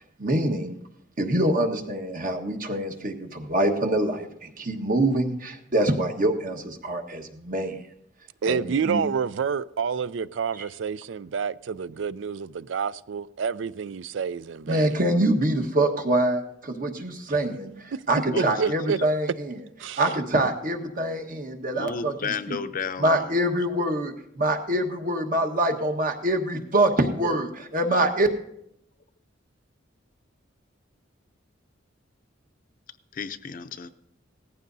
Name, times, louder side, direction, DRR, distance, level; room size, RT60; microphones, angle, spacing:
voice 1, 0.2-0.8 1.2-7.8 8.5-9.1 10.6-10.7 14.7-19.6 20.0-22.6 23.0-28.3, right 1 dB, 45° right, 1.3 m, -25 dB
voice 2, 8.4-14.9 18.3-19.0 19.8-20.0, right 6 dB, 70° right, 0.4 m, -28 dB
voice 3, 18.3-18.7 21.7-23.3 33.1-33.9, left 5 dB, 45° left, 0.6 m, -33 dB
18.0 x 14.5 x 2.7 m
head